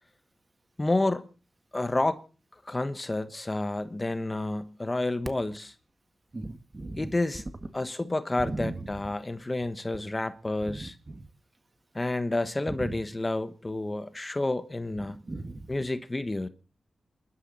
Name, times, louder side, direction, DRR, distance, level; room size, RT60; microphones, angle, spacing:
voice 1, 0.8-1.3 1.7-2.2 2.6-5.7 7.0-7.4 7.7-10.9 11.9-15.2 15.7-16.5, left 2 dB, 25° left, 1.1 m, -30 dB
voice 2, 6.3-7.1 8.4-8.8 10.7-11.3 12.7-13.0 15.1-15.7, right 2 dB, 30° right, 1.7 m, -37 dB
27.5 x 12.0 x 4.1 m
cardioid pair, 75°, 0 cm